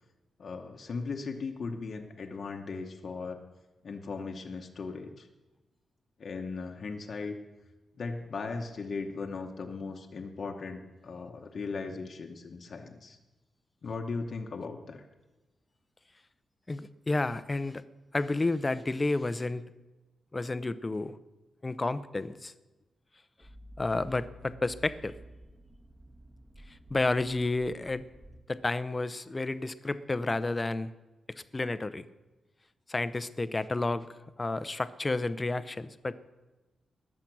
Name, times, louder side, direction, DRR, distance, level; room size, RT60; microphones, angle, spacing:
voice 1, 0.4-3.4 3.8-5.3 6.2-7.4 8.0-13.2 13.8-15.0, left 4 dB, 50° left, 3 dB, 1.0 m, -38 dB
voice 2, 16.7-17.8 18.1-19.6 20.3-21.2 21.6-22.5 23.8-25.1 26.7-28.0 28.5-30.9 31.5-32.1 32.9-36.1, left 2 dB, 20° left, 14 dB, 0.6 m, -31 dB
sound 1, 23.4-28.4, equal, 20° right, 1.5 m, -51 dB
20.0 x 7.4 x 6.1 m, 1.1 s
wide cardioid pair, 120°, 0 cm